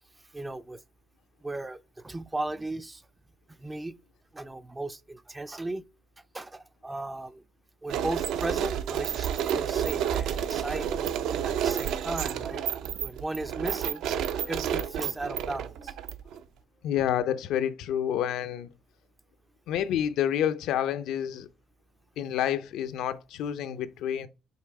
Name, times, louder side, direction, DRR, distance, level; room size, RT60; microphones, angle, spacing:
voice 1, 0.3-0.8 1.4-3.0 3.6-4.0 4.3-5.8 6.3-7.4 7.8-11.0 11.4-12.6 13.0-14.0 14.5-15.9, right 2 dB, 10° right, 0.3 m, -36 dB
sound 1, 7.9-16.4, right 9 dB, 75° right, 0.5 m, -30 dB
voice 2, 16.8-18.7 19.7-21.5 22.2-24.3, left 10 dB, 80° left, 0.6 m, -28 dB
5.6 x 4.1 x 4.6 m
cardioid pair, 155°, 0 cm